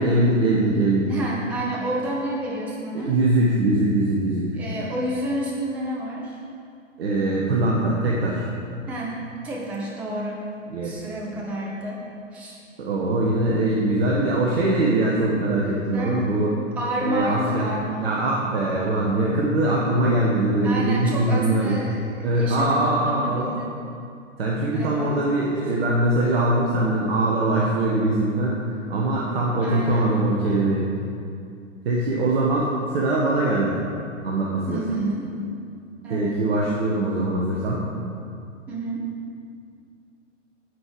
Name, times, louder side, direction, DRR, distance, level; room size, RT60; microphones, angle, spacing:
voice 1, 0.0-1.1 2.9-4.5 7.0-8.4 10.7-10.9 12.8-16.5 17.0-17.7 18.0-21.8 22.2-23.5 24.4-28.6 28.9-30.9 31.8-33.8 34.2-34.8 36.1-37.8, right 2 dB, 50° right, -4 dB, 1.5 m, -22 dB
voice 2, 1.1-3.2 4.5-6.4 8.9-10.5 10.8-12.0 12.3-12.6 15.9-16.3 16.8-18.1 20.6-22.1 22.3-23.7 24.7-25.1 29.6-30.1 34.7-35.3 36.0-36.4 38.7-39.1, right 1 dB, 5° right, -3 dB, 0.4 m, -29 dB
9.5 x 7.7 x 4.9 m, 2.4 s
figure-of-eight pair, 115°, 38 cm